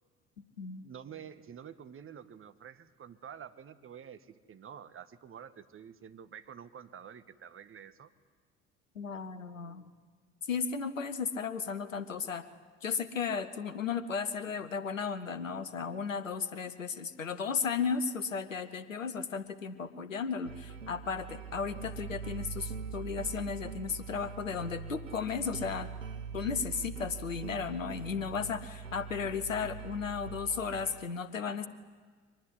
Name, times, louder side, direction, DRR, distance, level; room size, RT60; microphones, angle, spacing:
voice 1, 0.8-8.1, right 8 dB, 35° right, 11 dB, 1.6 m, -49 dB
voice 2, 8.9-9.8 10.5-12.4 12.8-25.9 26.3-31.7, left 6 dB, 85° left, 14 dB, 1.2 m, -35 dB
sound 1, 20.5-31.0, right 6 dB, 90° right, 0.9 m, -43 dB
24.0 x 19.5 x 9.8 m, 1.5 s
figure-of-eight pair, 60°, 38 cm